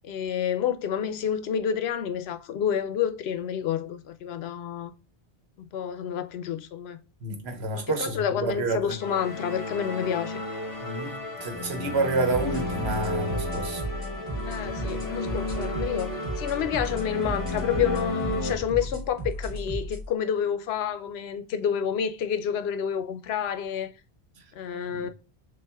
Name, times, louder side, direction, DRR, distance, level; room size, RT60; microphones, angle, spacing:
voice 1, 0.0-4.9 5.6-7.0 7.7-10.4 14.4-23.9 24.6-25.1, left 8 dB, 80° left, 0.8 m, -29 dB
voice 2, 7.2-9.0 10.8-13.8 25.0-25.1, right 3 dB, 85° right, 1.2 m, -29 dB
sound 1, 9.0-18.5, left 1 dB, 20° left, 0.9 m, -33 dB
sound 2, 12.3-20.0, right 1 dB, 40° right, 1.2 m, -34 dB
6.9 x 2.5 x 2.2 m
omnidirectional pair, 1.1 m